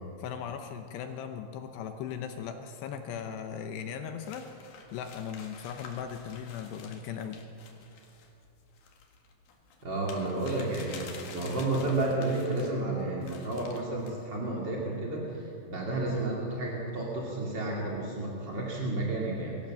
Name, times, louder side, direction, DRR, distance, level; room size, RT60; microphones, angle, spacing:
voice 1, 0.2-4.5 4.9-7.4, left 8 dB, 80° left, 6 dB, 2.5 m, -38 dB
sound 1, 4.2-12.7 13.2-14.2, left 5 dB, 55° left, 3.0 m, -50 dB
voice 2, 9.8-11.0 11.3-19.6, right 2 dB, 45° right, -3 dB, 1.4 m, -31 dB
23.0 x 15.0 x 7.5 m, 2.8 s
omnidirectional pair, 5.9 m